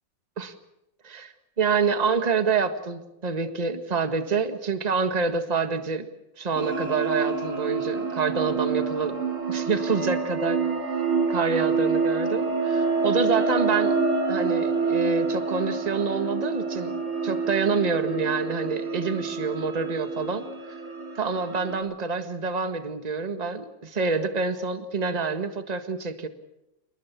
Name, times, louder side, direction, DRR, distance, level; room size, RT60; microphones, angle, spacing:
voice 1, 1.0-6.1 6.4-9.2 9.5-10.6 11.3-14.0 14.3-16.9 17.2-20.4 21.1-26.3, right 5 dB, 20° right, 9 dB, 1.5 m, -27 dB
sound 1, 6.5-21.8, right 4 dB, 80° right, 5.1 m, -27 dB
29.0 x 19.5 x 7.0 m, 0.91 s
omnidirectional pair, 2.2 m